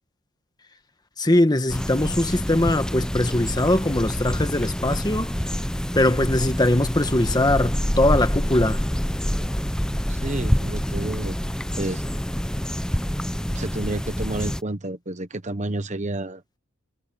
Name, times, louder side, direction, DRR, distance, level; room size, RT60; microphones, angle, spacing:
voice 1, 1.2-5.3 5.9-8.8, left 1 dB, 20° left, 1.3 m, -21 dB
sound 1, 1.7-14.6, equal, 5° left, 0.6 m, -26 dB
voice 2, 10.1-11.4 11.8-12.0 13.5-16.4, right 2 dB, 35° right, 1.1 m, -30 dB
head